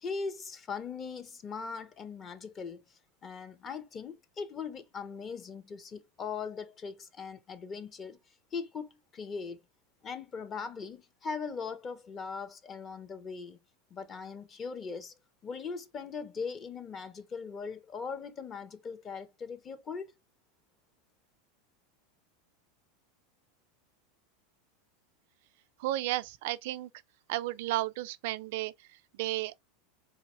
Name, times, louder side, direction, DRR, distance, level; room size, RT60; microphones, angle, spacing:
voice 1, 0.0-2.8 3.2-8.2 8.5-9.6 10.0-13.6 13.9-15.1 15.4-20.1, left 5 dB, 30° left, 0.8 m, -40 dB
voice 2, 25.8-26.9 27.3-29.5, right 16 dB, 65° right, 0.3 m, -33 dB
4.0 x 2.9 x 3.2 m
hypercardioid pair, 105°, 0 cm